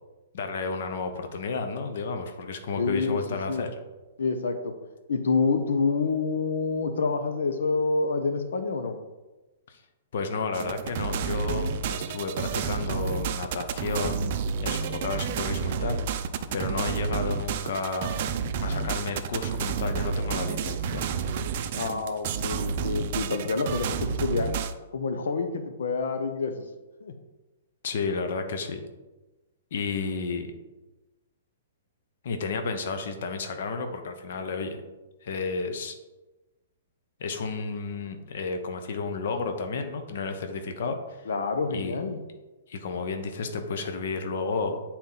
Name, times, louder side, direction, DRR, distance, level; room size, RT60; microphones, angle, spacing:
voice 1, 0.3-3.7 9.7-9.8 10.1-16.0 16.5-18.1 18.6-21.1 27.8-28.8 29.7-30.5 32.2-34.8 35.2-35.9 37.2-41.3 41.7-42.0 42.7-44.8, left 4 dB, 55° left, 6 dB, 0.9 m, -32 dB
voice 2, 2.7-3.2 3.5-3.7 4.2-4.7 5.1-9.0 21.7-24.5 24.9-26.6 27.0-27.1 41.3-42.2, left 4 dB, 85° left, 7 dB, 0.8 m, -27 dB
sound 1, 10.5-24.7, right 6 dB, 40° right, 0.5 m, -30 dB
9.2 x 4.3 x 4.0 m, 1.1 s
hypercardioid pair, 170°, 0 cm